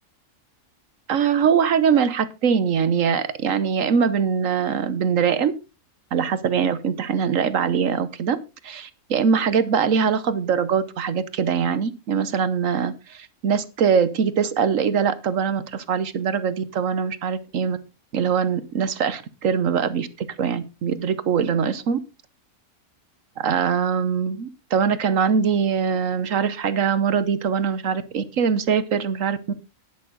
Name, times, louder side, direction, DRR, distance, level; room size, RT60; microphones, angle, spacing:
voice 1, 1.1-5.5 6.1-8.4 8.6-17.8 18.1-22.0 23.4-29.5, right 7 dB, 75° right, 14 dB, 1.3 m, -22 dB
11.0 x 10.5 x 3.8 m, 0.28 s
omnidirectional pair, 1.4 m